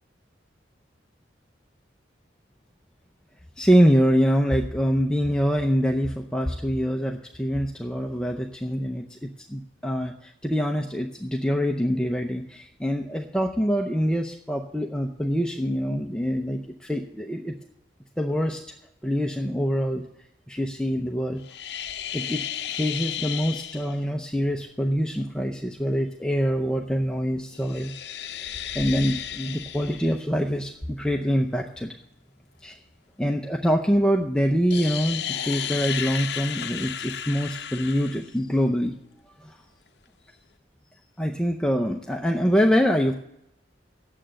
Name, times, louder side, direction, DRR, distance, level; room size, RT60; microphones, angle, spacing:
voice 1, 3.6-17.5 18.2-18.6 19.0-20.0 20.5-21.4 22.1-22.4 22.7-27.9 28.7-32.0 32.6-32.8 33.2-38.9 39.4-39.6 41.2-43.1, equal, 5° left, 3 dB, 0.6 m, -25 dB
sound 1, 21.4-24.0 27.5-30.2 34.7-38.3, left 9 dB, 65° left, 0.6 m, -33 dB
9.2 x 7.6 x 8.8 m, 0.80 s
head